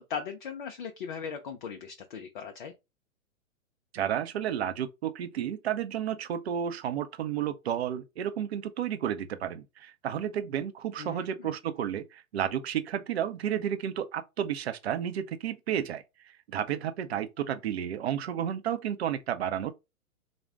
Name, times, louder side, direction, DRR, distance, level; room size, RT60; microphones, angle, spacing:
voice 1, 0.0-2.7 11.0-11.5, left 6 dB, 40° left, 0.4 m, -38 dB
voice 2, 3.9-16.0 16.5-19.7, right 9 dB, 50° right, 0.6 m, -32 dB
3.9 x 2.1 x 3.4 m
figure-of-eight pair, 115°, 41 cm